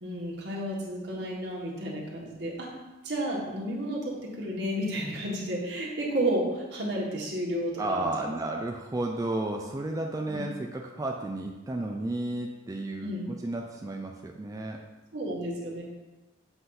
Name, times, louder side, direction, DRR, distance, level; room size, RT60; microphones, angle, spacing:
voice 1, 0.0-2.7 3.0-8.1 10.3-10.4 13.0-13.3 15.1-15.8, right 1 dB, 65° right, -4 dB, 1.6 m, -32 dB
voice 2, 7.8-14.8, right 2 dB, 20° right, 1 dB, 0.3 m, -32 dB
7.8 x 2.6 x 5.8 m, 1.1 s
head